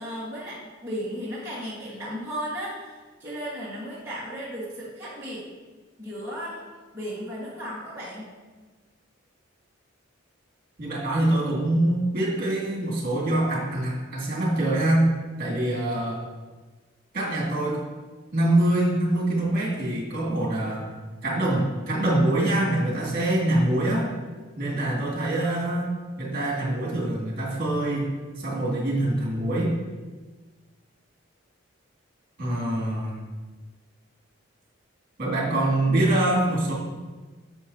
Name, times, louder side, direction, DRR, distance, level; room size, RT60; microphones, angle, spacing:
voice 1, 0.0-5.4 6.0-6.6 6.9-8.3, equal, 10° right, -10 dB, 1.7 m, -35 dB
voice 2, 10.8-15.1 15.4-16.2 17.1-17.8 18.3-20.9 21.2-24.1 24.6-29.7 32.4-33.1 35.2-36.7, right 1 dB, 45° right, -4 dB, 2.5 m, -24 dB
10.5 x 6.8 x 2.9 m, 1.3 s
head